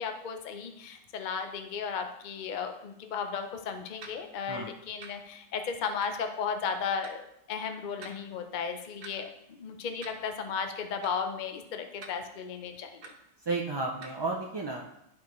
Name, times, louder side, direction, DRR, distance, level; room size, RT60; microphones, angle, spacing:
voice 1, 0.0-7.2 7.5-13.0, left 6 dB, 45° left, 6 dB, 0.7 m, -35 dB
sound 1, 4.0-4.2 5.0-5.1 6.0-6.2 7.0-7.1 8.0-8.2 9.0-9.1 10.0-10.2 11.0-11.1 12.0-12.1 13.0-13.1 14.0-14.2, right 4 dB, 90° right, 1.3 m, -45 dB
voice 2, 13.5-14.8, right 3 dB, 40° right, 0 dB, 0.3 m, -32 dB
11.0 x 4.8 x 3.1 m, 0.80 s
omnidirectional pair, 1.3 m